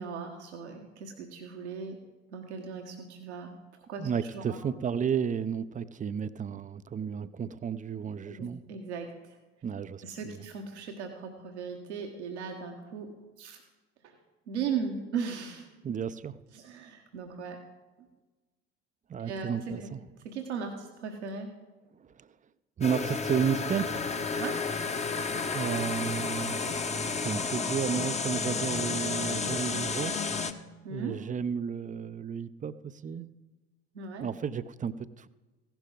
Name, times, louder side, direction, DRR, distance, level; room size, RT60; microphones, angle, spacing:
voice 1, 0.0-2.0 2.3-3.5 3.9-4.0 4.3-4.6 8.3-9.1 10.0-13.6 14.5-15.7 16.5-17.6 19.2-19.5 19.8-19.9 20.2-21.5 24.4-24.6 30.8-31.2 33.9-34.3, right 6 dB, 75° right, 2 dB, 1.3 m, -37 dB
voice 2, 4.0-8.7 9.6-10.5 15.8-16.4 19.1-20.0 22.0-22.3 22.8-24.1 25.5-30.4 30.9-33.3 34.2-35.3, right 7 dB, 25° right, 14 dB, 0.6 m, -33 dB
sound 1, 22.8-30.5, left 4 dB, 20° left, 0.9 m, -31 dB
16.0 x 11.5 x 3.9 m, 1.2 s
figure-of-eight pair, 60°, 34 cm